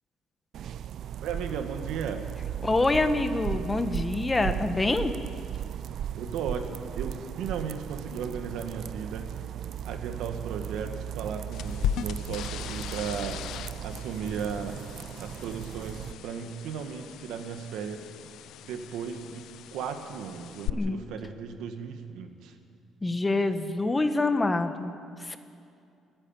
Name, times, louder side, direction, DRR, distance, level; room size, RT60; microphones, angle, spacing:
sound 1, 0.5-16.1, right 10 dB, 60° right, 0.4 m, -36 dB
voice 1, 1.2-2.3 6.1-9.3 9.8-13.4 13.8-14.8 15.2-18.1 18.6-22.6, right 6 dB, 85° right, 6 dB, 1.8 m, -36 dB
voice 2, 2.6-5.1 20.7-21.0 23.0-24.9 25.2-25.4, left 2 dB, 15° left, 9 dB, 1.1 m, -26 dB
sound 2, 11.5-20.7, left 10 dB, 75° left, 0.5 m, -38 dB
29.5 x 10.0 x 9.0 m, 2.5 s
cardioid pair, 130°, 0 cm